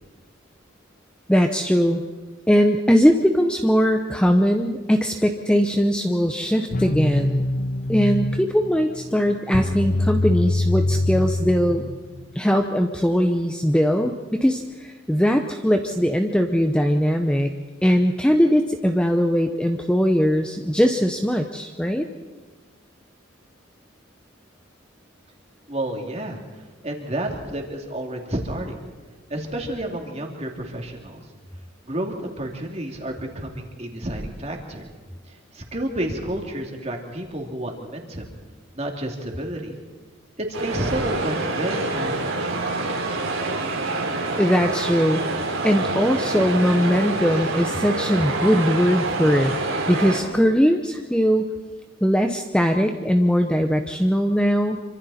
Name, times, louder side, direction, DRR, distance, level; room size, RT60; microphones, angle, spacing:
voice 1, 1.3-2.0 2.5-7.5 7.9-11.8 12.3-17.5 17.8-22.1 44.4-45.2 45.6-49.6 49.9-51.5 52.0-54.8, equal, 5° left, 4 dB, 0.8 m, -20 dB
sound 1, 6.7-12.3, left 2 dB, 40° left, 0.6 m, -24 dB
voice 2, 25.7-28.8 29.3-31.2 31.8-34.9 35.2-38.3 38.7-39.8 40.4-42.9, right 1 dB, 30° right, 2 dB, 2.8 m, -30 dB
sound 2, 40.5-50.2, right 2 dB, 85° right, 3.8 m, -26 dB
27.0 x 25.0 x 4.3 m, 1.3 s
head